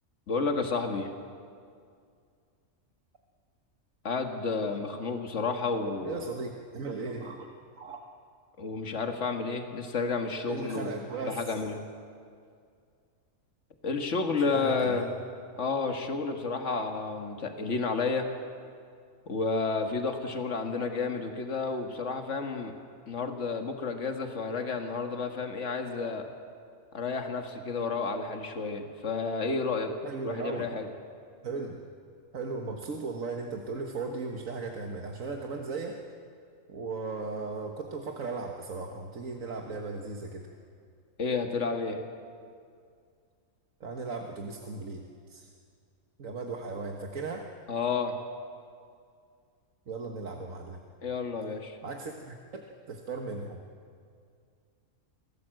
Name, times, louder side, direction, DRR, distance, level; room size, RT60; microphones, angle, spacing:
voice 1, 0.3-1.1 4.0-6.2 8.6-11.0 11.2-11.8 13.8-15.1 15.6-18.3 19.3-22.7 23.1-26.3 26.9-29.9 30.2-30.9 41.2-42.0 47.7-48.2 51.0-51.8, left 4 dB, 60° left, 4 dB, 2.0 m, -31 dB
voice 2, 6.0-7.5 7.8-8.0 10.5-11.4 14.5-15.1 16.6-16.9 30.0-30.7 31.4-31.8 32.3-36.0 36.7-40.5 43.8-45.0 45.3-45.5 46.2-47.5 49.9-50.8 51.8-53.6, right 4 dB, 75° right, 2 dB, 1.8 m, -37 dB
26.0 x 17.0 x 7.8 m, 2.2 s
omnidirectional pair, 1.4 m